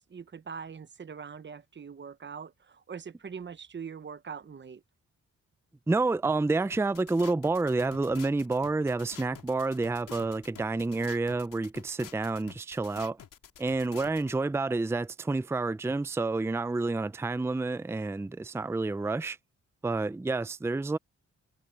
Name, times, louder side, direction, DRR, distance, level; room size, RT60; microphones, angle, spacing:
voice 1, 0.1-4.8, right 6 dB, 35° right, 1.0 m, -42 dB
voice 2, 5.9-13.2 13.6-19.4 19.8-21.0, right 3 dB, 10° right, 0.5 m, -29 dB
sound 1, 6.7-14.3, left 9 dB, 80° left, 2.8 m, -49 dB
cardioid pair, 80°, 32 cm